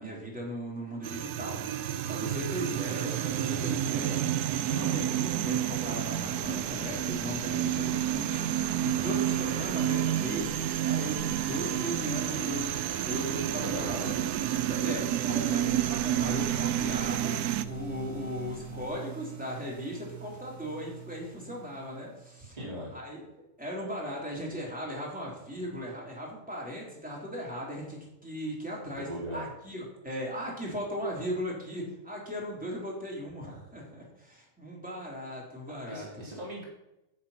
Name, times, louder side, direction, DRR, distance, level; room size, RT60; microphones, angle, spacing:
voice 1, 0.0-4.2 4.6-13.9 14.2-14.3 14.7-17.4 17.6-22.6 22.9-23.2 23.6-36.1, equal, 5° right, -4 dB, 3.6 m, -37 dB
sound 1, 1.0-17.6, right 11 dB, 75° right, 1.1 m, -30 dB
sound 2, 6.1-18.9, left 3 dB, 50° left, 2.3 m, -47 dB
sound 3, 11.1-22.7, right 12 dB, 50° right, 1.3 m, -44 dB
voice 2, 13.6-14.2 22.6-22.9 28.9-29.5 35.9-36.6, equal, 25° right, -5 dB, 3.8 m, -39 dB
11.0 x 6.8 x 5.8 m, 0.90 s
omnidirectional pair, 1.7 m